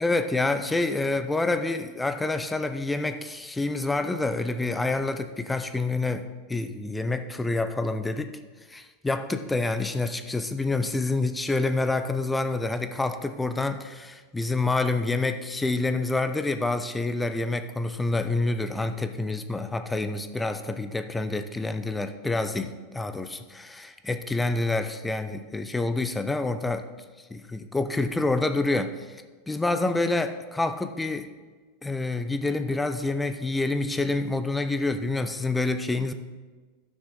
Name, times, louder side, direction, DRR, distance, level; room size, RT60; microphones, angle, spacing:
voice 1, 0.0-8.4 8.7-26.8 27.3-31.3 31.8-36.1, left 2 dB, 10° left, 9 dB, 0.7 m, -27 dB
11.5 x 6.2 x 4.0 m, 1.4 s
hypercardioid pair, 105°, 0 cm